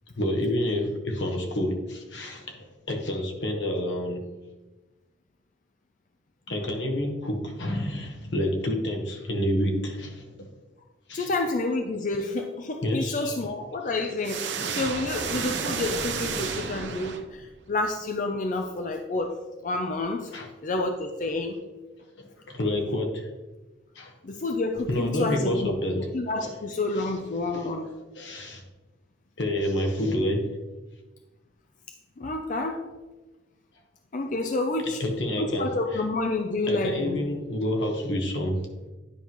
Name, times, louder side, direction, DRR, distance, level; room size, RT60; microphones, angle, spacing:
voice 1, 0.2-4.2 6.5-10.5 11.1-11.3 12.8-13.3 14.5-14.6 20.3-20.5 22.2-23.3 23.9-24.1 24.9-26.1 26.4-26.5 27.7-28.6 29.4-30.5 35.0-35.7 36.7-38.7, left 1 dB, 80° left, 2 dB, 1.3 m, -28 dB
voice 2, 11.1-19.4 19.6-20.3 20.6-21.6 24.2-25.7 26.1-27.9 32.2-32.8 34.1-35.0 35.4-37.2, left 2 dB, 45° left, 4 dB, 0.5 m, -29 dB
sound 1, 14.2-17.6, right 5 dB, 80° right, 0.8 m, -31 dB
10.0 x 5.5 x 3.0 m, 1.2 s
head